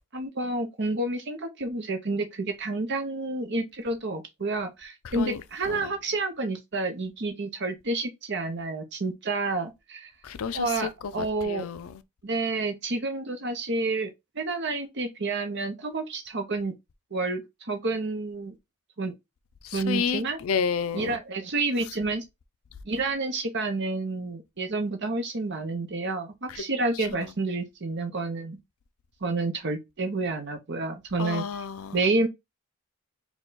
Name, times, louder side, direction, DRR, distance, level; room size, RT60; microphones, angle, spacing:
voice 1, 0.1-10.1 10.5-11.7 12.2-14.1 14.3-16.7 17.1-18.5 19.0-19.1 19.7-20.4 20.9-22.2 22.8-28.6 29.2-31.5 31.9-32.3, right 3 dB, 50° right, 0.9 m, -29 dB
voice 2, 10.2-10.7 11.5-11.9 19.7-21.2 27.1-27.2 31.2-32.0, left 6 dB, 70° left, 0.4 m, -30 dB
4.5 x 2.3 x 3.9 m
head